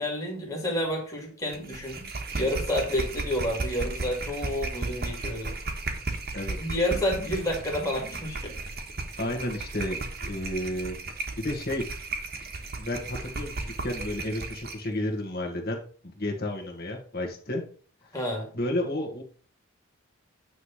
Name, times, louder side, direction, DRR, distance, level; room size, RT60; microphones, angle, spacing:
voice 1, 0.0-2.1 2.3-5.5 6.6-8.5 18.1-18.5, left 1 dB, 15° left, -1 dB, 2.2 m, -29 dB
sound 1, 1.5-14.9, right 3 dB, 45° right, 1.1 m, -35 dB
voice 2, 9.2-11.9 12.8-15.8 16.2-17.6 18.5-19.2, left 1 dB, 45° left, 1 dB, 1.8 m, -32 dB
9.2 x 3.3 x 5.8 m, 0.42 s
head